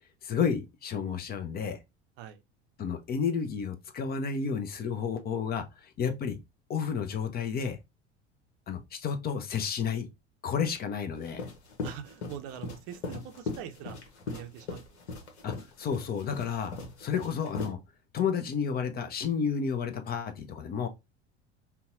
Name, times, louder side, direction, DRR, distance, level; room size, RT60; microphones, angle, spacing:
voice 1, 0.2-1.8 2.8-6.4 6.7-7.8 8.7-10.1 10.4-11.5 15.4-17.8 18.1-20.9, left 6 dB, 25° left, 0.6 m, -31 dB
sound 1, 11.2-17.7, left 3 dB, 70° left, 1.1 m, -38 dB
voice 2, 11.8-14.0 14.3-15.3, right 9 dB, 50° right, 0.6 m, -43 dB
5.4 x 2.2 x 2.6 m
figure-of-eight pair, 70°, 34 cm